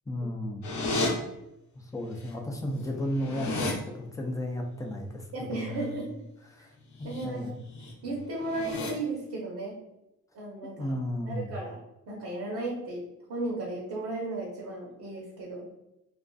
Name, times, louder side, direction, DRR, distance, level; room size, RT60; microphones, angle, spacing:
voice 1, 0.1-0.7 1.7-5.9 6.5-6.7 7.0-7.6 10.8-11.5, left 1 dB, 10° left, 2 dB, 0.4 m, -34 dB
sound 1, 0.6-1.1 2.3-2.4 2.7-3.7 6.9-7.2 7.6-7.9 8.4-8.9, left 2 dB, 70° left, 0.7 m, -32 dB
voice 2, 5.3-6.2 7.0-7.5 8.0-9.8 10.3-11.0 11.2-11.8 12.1-15.6, right 2 dB, 70° right, -3 dB, 0.8 m, -35 dB
2.5 x 2.4 x 2.3 m, 0.89 s
cardioid pair, 90°, 30 cm